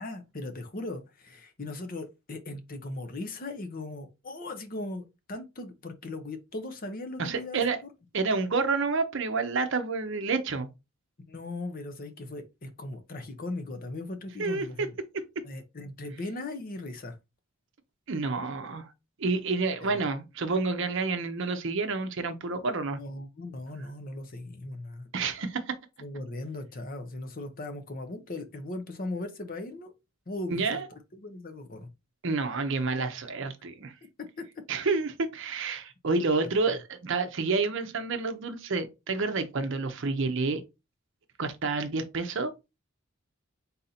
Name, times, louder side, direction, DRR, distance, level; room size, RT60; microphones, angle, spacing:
voice 1, 0.0-7.9 11.3-15.0 15.4-17.2 19.8-20.0 22.9-25.1 26.0-29.9 30.3-30.8 31.1-31.9 34.4-34.5, left 2 dB, 40° left, 0.7 m, -38 dB
voice 2, 7.2-7.8 8.1-10.7 14.4-14.7 15.4-15.5 18.1-18.9 19.2-23.0 25.1-25.8 30.5-30.9 32.2-33.9 34.7-40.6 41.4-42.5, right 4 dB, 55° right, 0.6 m, -29 dB
4.1 x 2.6 x 4.1 m
head